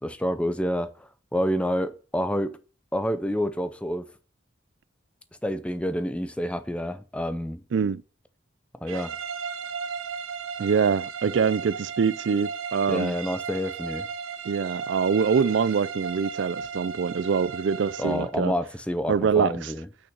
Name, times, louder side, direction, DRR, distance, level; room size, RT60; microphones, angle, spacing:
voice 1, 0.0-2.6 2.9-4.1 5.4-7.6 8.8-9.1 12.9-14.1 18.0-19.9, equal, 5° left, 0.5 m, -28 dB
sound 1, 8.9-18.3, right 6 dB, 85° right, 0.7 m, -35 dB
voice 2, 10.6-13.1 14.4-18.5 19.1-19.7, right 6 dB, 65° right, 0.4 m, -24 dB
6.2 x 6.0 x 6.7 m
head